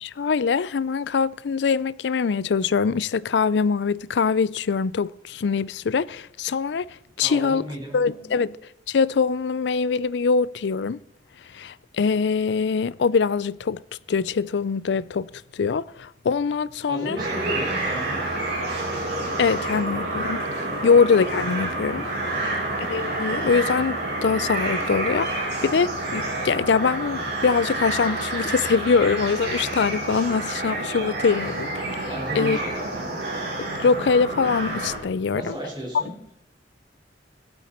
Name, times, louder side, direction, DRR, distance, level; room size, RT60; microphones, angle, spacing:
voice 1, 0.0-7.6 7.9-8.5 8.9-11.0 11.5-13.8 14.1-15.3 15.5-17.2 19.4-20.4 20.8-22.1 22.9-32.1 32.4-32.6 33.6-35.6, left 5 dB, 75° left, 0.4 m, -23 dB
voice 2, 7.2-8.5 16.9-18.7 20.7-21.0 22.4-22.7 32.1-33.1 35.3-36.1, right 1 dB, 25° right, 5.2 m, -34 dB
sound 1, 17.2-35.0, right 2 dB, 75° right, 5.6 m, -28 dB
17.5 x 12.5 x 4.4 m
head